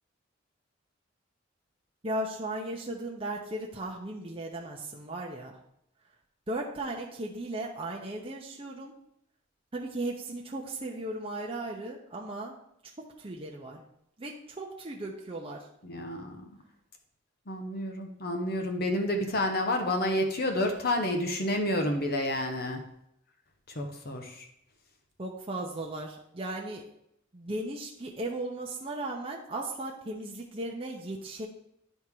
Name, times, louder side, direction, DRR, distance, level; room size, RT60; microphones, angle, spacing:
voice 1, 2.0-5.5 6.5-8.9 9.7-12.5 13.2-13.8 14.2-15.6 25.2-26.8 27.3-31.5, right 1 dB, 30° right, -2 dB, 0.8 m, -36 dB
voice 2, 15.8-16.4 17.5-22.8 23.7-24.4, left 1 dB, 55° left, 4 dB, 0.9 m, -29 dB
10.0 x 3.6 x 4.6 m, 0.75 s
head